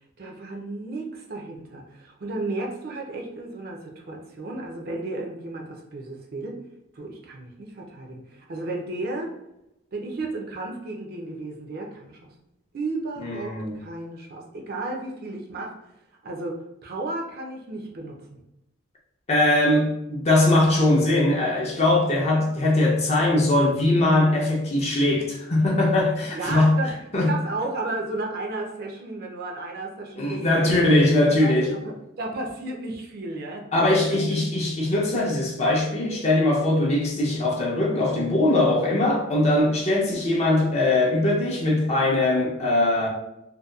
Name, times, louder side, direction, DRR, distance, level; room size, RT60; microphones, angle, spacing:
voice 1, 0.2-6.6 6.9-9.4 9.9-12.2 12.7-15.7 16.2-18.4 22.1-22.5 26.3-26.9 27.3-30.7 31.4-33.6 33.9-34.2 40.0-40.2, right 2 dB, 50° right, 0.4 m, -33 dB
voice 2, 13.2-13.7 19.3-26.8 27.1-27.3 30.2-31.8 33.7-43.1, left 1 dB, 35° left, 0.5 m, -21 dB
2.7 x 2.2 x 2.3 m
head